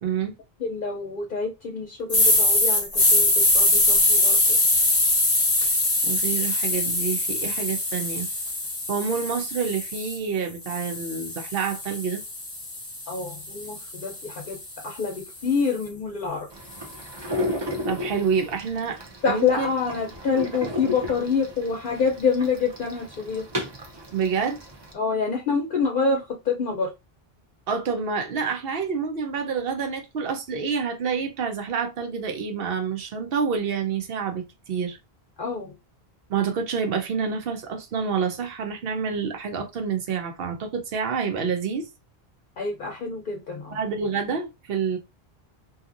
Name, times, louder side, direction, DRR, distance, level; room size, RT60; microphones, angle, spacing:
voice 1, 0.0-0.3 6.0-8.3 8.9-12.2 17.9-19.0 19.3-19.7 24.1-24.6 27.7-35.0 36.3-41.9 43.7-45.0, right 6 dB, 70° right, 0.8 m, -28 dB
voice 2, 0.6-4.6 13.1-14.6 14.8-16.5 19.2-23.4 24.9-26.9 35.4-35.7 42.6-43.8, left 5 dB, 60° left, 0.7 m, -27 dB
sound 1, 2.1-10.2 10.7-14.9, left 2 dB, 20° left, 0.9 m, -23 dB
sound 2, 16.5-24.9, left 1 dB, 30° right, 0.5 m, -34 dB
2.7 x 2.4 x 2.5 m
omnidirectional pair, 1.0 m